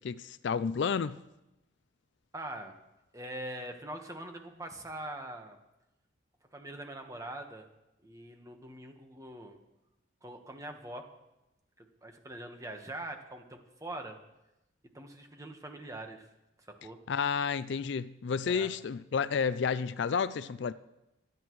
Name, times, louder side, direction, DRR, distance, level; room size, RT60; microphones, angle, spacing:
voice 1, 0.0-1.2 17.1-20.7, left 6 dB, 60° left, 0.4 m, -31 dB
voice 2, 2.3-2.7 3.1-5.6 6.5-7.7 8.0-9.6 10.2-11.1 11.8-14.2 14.9-16.3 16.6-17.0 18.5-18.7, right 1 dB, 15° right, 1.3 m, -43 dB
25.5 x 10.5 x 3.1 m
head